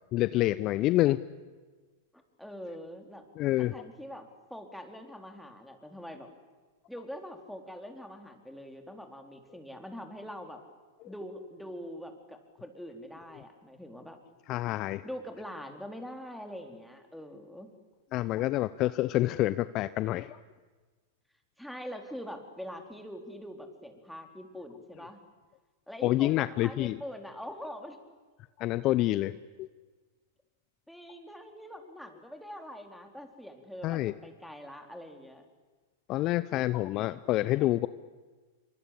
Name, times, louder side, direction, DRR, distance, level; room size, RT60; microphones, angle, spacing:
voice 1, 0.1-1.2 3.4-3.7 14.5-15.0 18.1-20.4 26.0-27.0 28.6-29.7 33.8-34.1 36.1-37.9, left 16 dB, 40° left, 15 dB, 0.8 m, -27 dB
voice 2, 2.4-3.3 3.6-6.3 6.9-10.6 11.1-14.2 15.0-17.7 21.6-25.2 25.9-28.0 30.9-35.4, equal, ahead, 4 dB, 4.1 m, -43 dB
27.0 x 24.5 x 8.5 m, 1.4 s
hypercardioid pair, 100°, 0 cm